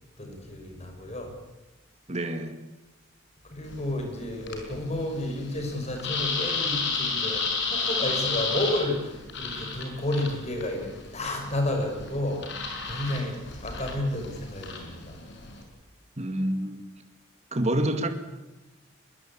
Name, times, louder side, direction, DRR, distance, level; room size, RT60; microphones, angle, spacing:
voice 1, 0.2-1.3 3.4-12.5 12.9-15.2, left 1 dB, 35° left, 5.8 m, -31 dB
voice 2, 2.1-2.6 16.2-16.9 17.5-18.1, right 1 dB, 35° right, 2.1 m, -27 dB
sound 1, 3.6-15.6, left 4 dB, 65° left, 5.6 m, -33 dB
22.0 x 21.5 x 8.7 m
head